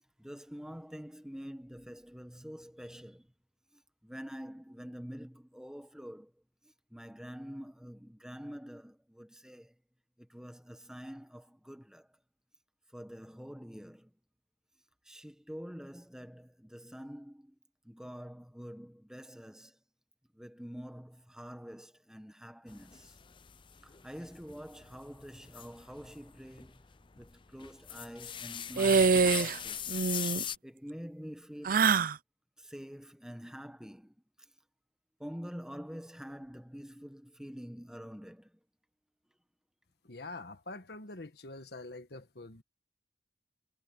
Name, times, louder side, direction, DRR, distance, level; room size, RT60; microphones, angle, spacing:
voice 1, 0.0-3.3 3.7-6.3 6.9-9.7 10.2-12.1 12.9-14.1 15.0-17.5 17.8-19.8 20.3-23.2 23.8-26.8 27.2-29.9 30.3-31.9 32.6-34.1 35.2-38.6, equal, 5° right, 1.4 m, -46 dB
sound 1, 22.7-30.6, left 8 dB, 30° left, 0.6 m, -41 dB
sound 2, 28.8-29.6 29.9-30.4 31.6-32.2, right 5 dB, 50° right, 0.5 m, -25 dB
voice 2, 40.0-42.6, left 2 dB, 65° left, 1.5 m, -45 dB
head